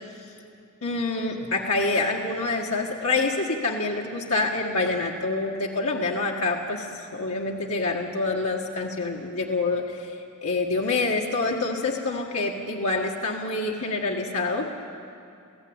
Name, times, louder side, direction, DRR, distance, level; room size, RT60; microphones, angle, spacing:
voice 1, 0.8-14.7, left 3 dB, 75° left, -2 dB, 1.7 m, -27 dB
28.5 x 16.5 x 8.8 m, 2.6 s
head